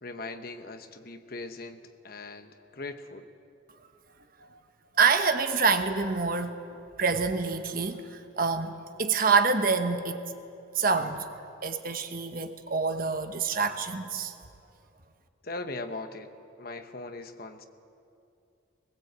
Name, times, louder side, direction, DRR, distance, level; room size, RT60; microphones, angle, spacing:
voice 1, 0.0-3.3 15.4-16.3 16.6-17.6, left 2 dB, 45° left, 8 dB, 1.1 m, -40 dB
voice 2, 5.0-6.6 7.0-8.7 9.0-10.2 10.7-11.3 11.6-14.3, right 5 dB, 45° right, 7 dB, 1.2 m, -26 dB
20.5 x 20.5 x 8.2 m, 2.6 s
head